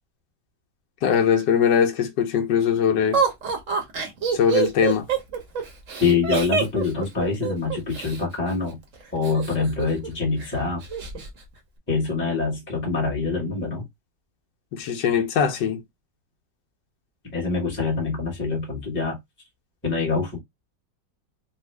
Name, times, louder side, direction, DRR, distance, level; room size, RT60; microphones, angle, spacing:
voice 1, 1.0-3.2 4.3-5.0 14.7-15.8, left 8 dB, 75° left, 1.3 m, -21 dB
Laughter, 3.1-8.2 9.2-10.1 10.4-10.5 10.8-11.3, right 6 dB, 50° right, 1.2 m, -26 dB
voice 2, 6.0-8.8 9.1-10.8 11.9-13.8 17.3-19.2 19.8-20.4, left 4 dB, 5° left, 1.1 m, -25 dB
3.5 x 2.3 x 3.2 m
omnidirectional pair, 1.9 m